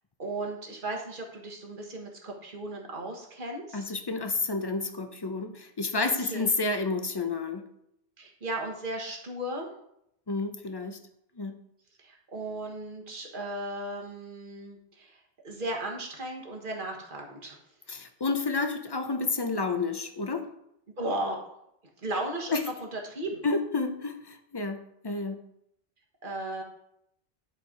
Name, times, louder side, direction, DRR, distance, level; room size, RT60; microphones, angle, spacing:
voice 1, 0.2-3.8 6.0-6.5 8.2-9.7 12.0-17.6 21.0-21.4 22.0-23.4 26.2-26.6, right 1 dB, 50° right, 1 dB, 1.6 m, -36 dB
voice 2, 3.7-7.6 10.3-11.0 11.4-11.6 17.9-20.5 22.5-22.6 23.4-25.5, left 3 dB, 25° left, 7 dB, 0.6 m, -30 dB
10.5 x 4.4 x 5.0 m, 0.78 s
omnidirectional pair, 1.1 m